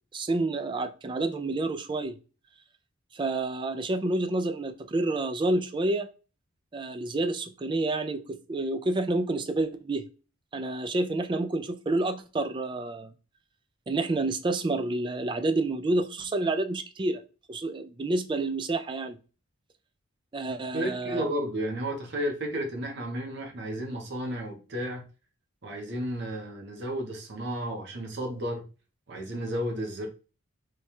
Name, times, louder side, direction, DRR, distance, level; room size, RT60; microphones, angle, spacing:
voice 1, 0.1-2.2 3.1-6.1 6.7-10.0 10.5-13.1 13.9-17.2 17.5-19.2 20.3-21.3, right 2 dB, 25° right, 8 dB, 0.3 m, -29 dB
voice 2, 20.5-25.0 25.6-28.6 29.1-30.1, equal, 55° right, 2 dB, 0.9 m, -33 dB
3.2 x 2.3 x 4.3 m, 0.33 s
head